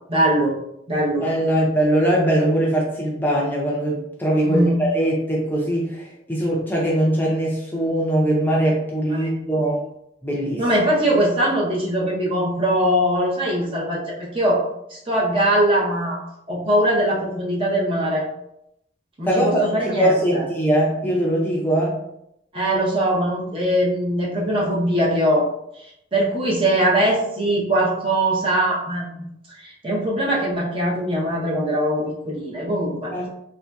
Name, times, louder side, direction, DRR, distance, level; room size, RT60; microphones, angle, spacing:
voice 1, 0.1-0.5 0.9-1.3 4.4-4.8 9.1-9.3 10.6-16.2 16.5-18.3 19.2-20.4 22.5-25.5 26.1-29.1 29.6-33.1, right 1 dB, 30° right, -4 dB, 0.7 m, -21 dB
voice 2, 1.2-9.8 10.2-10.6 19.3-22.0 33.1-33.3, right 1 dB, 10° left, -4 dB, 0.5 m, -21 dB
3.4 x 2.6 x 2.2 m, 0.79 s
head